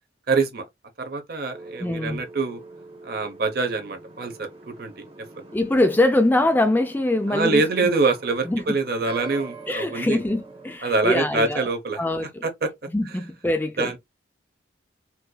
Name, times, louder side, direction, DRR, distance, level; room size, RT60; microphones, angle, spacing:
voice 1, 0.3-0.6 1.0-2.6 3.0-5.0 7.3-10.2 10.8-12.0 12.4-12.7 13.0-13.2 13.8-14.0, right 3 dB, 50° right, 0.8 m, -25 dB
sound 1, 1.5-10.8, right 3 dB, 30° right, 1.1 m, -44 dB
voice 2, 1.8-2.2 5.5-7.9 8.5-8.6 9.7-11.7 12.0-12.4 12.9-13.9, left 1 dB, 10° left, 0.3 m, -23 dB
4.3 x 2.5 x 2.2 m
head